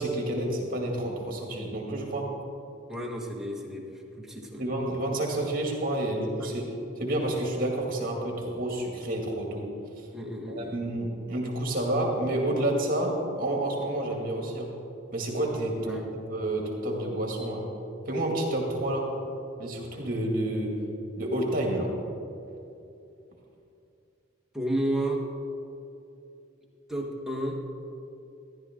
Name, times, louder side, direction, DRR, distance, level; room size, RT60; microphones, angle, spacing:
voice 1, 0.0-2.3 4.6-6.6 7.0-9.7 10.0-10.1 10.5-14.7 15.1-16.0 16.3-17.6 18.1-19.1 19.6-20.8 21.2-21.9, right 1 dB, 50° right, 0 dB, 2.2 m, -29 dB
voice 2, 2.9-3.8 4.2-4.6 6.4-6.5 10.1-10.8 15.9-16.1 24.5-25.2 26.9-27.6, right 1 dB, ahead, -2 dB, 1.2 m, -31 dB
14.0 x 11.5 x 3.7 m, 2.7 s
head